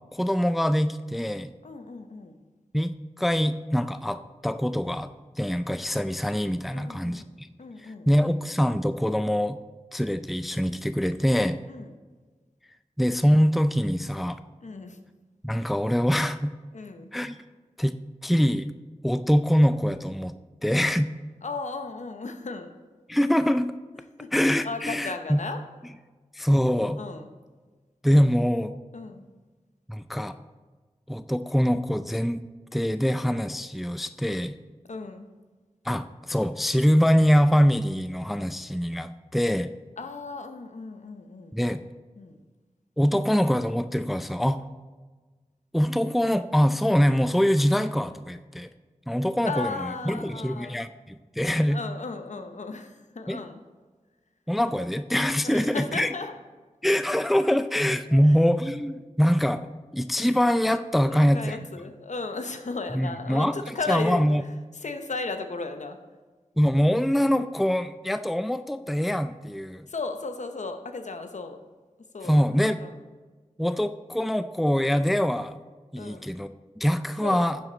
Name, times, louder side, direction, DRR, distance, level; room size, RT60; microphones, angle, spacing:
voice 1, 0.1-1.5 2.7-5.1 5.4-7.5 7.8-9.6 9.9-11.6 13.0-14.4 15.4-16.5 17.1-17.4 17.8-18.0 18.2-18.7 19.0-20.3 20.6-21.1 23.1-23.7 24.3-25.4 26.3-27.0 28.0-28.8 29.9-30.4 31.1-32.4 32.7-34.6 35.9-39.7 41.5-41.8 43.0-44.6 45.7-48.7 49.1-51.8 53.3-53.4 54.5-56.1 56.8-61.6 62.9-63.6 63.9-64.4 66.6-69.9 72.2-72.8 73.6-75.6 75.9-77.6, equal, ahead, 11 dB, 0.3 m, -24 dB
voice 2, 1.6-2.4 6.7-7.3 7.6-8.2 11.7-11.9 14.6-15.0 16.7-17.1 21.4-22.7 24.2-24.3 24.6-25.6 27.0-27.3 28.9-29.2 34.9-35.3 40.0-41.6 42.2-42.4 49.4-50.8 51.7-53.6 55.4-56.3 58.1-58.4 61.0-64.2 64.8-66.0 69.9-71.6 72.1-72.5 72.8-73.0 76.0-76.3 77.2-77.5, left 3 dB, 70° left, 7 dB, 0.8 m, -35 dB
10.0 x 7.5 x 3.9 m, 1.3 s
wide cardioid pair, 50°, 13 cm